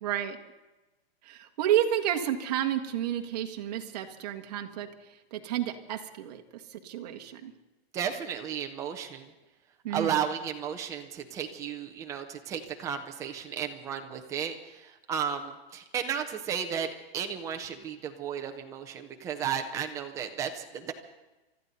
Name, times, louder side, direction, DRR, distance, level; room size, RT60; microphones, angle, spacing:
voice 1, 0.0-0.4 1.2-4.9 5.3-6.4 6.7-7.5 9.8-10.2, right 11 dB, 40° right, 5 dB, 1.3 m, -30 dB
voice 2, 7.9-9.3 9.9-20.9, right 8 dB, 10° right, 5 dB, 0.5 m, -34 dB
24.5 x 13.5 x 4.1 m, 1.1 s
hypercardioid pair, 165°, 31 cm